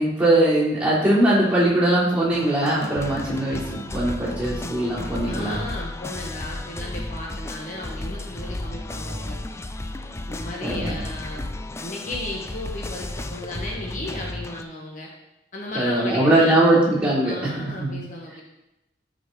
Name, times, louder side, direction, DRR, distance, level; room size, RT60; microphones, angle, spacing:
voice 1, 0.0-5.6 9.0-9.1 10.6-11.0 15.7-17.3 17.8-18.0, right 1 dB, 5° right, -8 dB, 3.3 m, -21 dB
sound 1, 2.3-14.6, left 1 dB, 15° left, 0.4 m, -33 dB
voice 2, 5.3-9.4 10.3-11.4 11.8-15.1 15.5-16.8 17.2-18.4, left 2 dB, 45° left, -2 dB, 1.4 m, -35 dB
12.0 x 5.2 x 4.0 m, 0.91 s
head